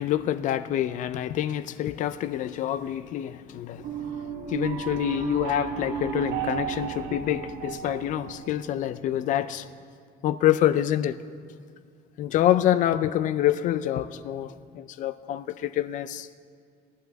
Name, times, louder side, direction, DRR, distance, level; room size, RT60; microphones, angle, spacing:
voice 1, 0.0-3.9 4.5-9.7 10.2-11.1 12.2-16.3, left 12 dB, 45° left, 14 dB, 0.4 m, -26 dB
sound 1, 3.8-8.8, right 7 dB, 75° right, 1.5 m, -33 dB
18.0 x 11.0 x 3.4 m, 2.2 s
cardioid pair, 175°, 18 cm